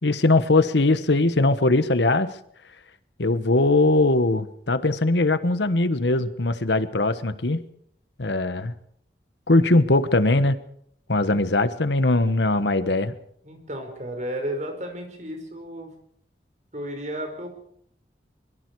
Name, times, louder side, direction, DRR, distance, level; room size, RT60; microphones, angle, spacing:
voice 1, 0.0-2.3 3.2-7.6 8.2-8.7 9.5-10.6 11.1-13.1, left 2 dB, 85° left, 12 dB, 1.3 m, -20 dB
voice 2, 13.4-15.9 16.7-17.5, equal, 40° right, 5 dB, 5.2 m, -33 dB
24.0 x 22.5 x 4.8 m, 0.66 s
head